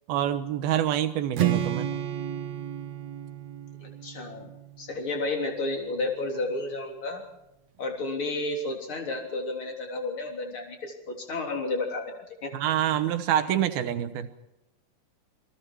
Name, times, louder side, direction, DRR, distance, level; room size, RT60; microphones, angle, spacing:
voice 1, 0.1-1.9 12.5-14.3, right 11 dB, 70° right, 10 dB, 2.8 m, -26 dB
Strum, 1.3-5.5, right 11 dB, 55° right, 2.4 m, -31 dB
voice 2, 3.8-4.5 4.8-7.2 7.8-12.5, left 2 dB, 30° left, 2 dB, 3.8 m, -32 dB
28.5 x 21.0 x 4.6 m, 0.89 s
omnidirectional pair, 4.8 m